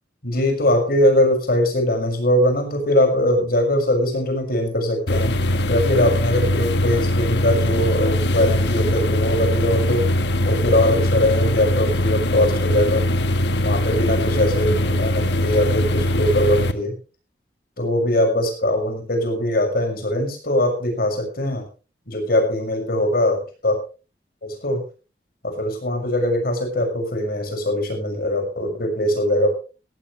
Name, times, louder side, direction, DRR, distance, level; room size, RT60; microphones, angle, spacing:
voice 1, 0.2-5.3 5.7-10.1 10.4-13.1 13.6-16.9 17.8-21.7 22.1-23.8 24.4-24.8 25.4-29.5, left 1 dB, 60° left, 4 dB, 6.2 m, -21 dB
sound 1, 5.1-16.7, left 1 dB, 75° left, 1.3 m, -21 dB
17.0 x 15.5 x 3.2 m, 0.33 s
head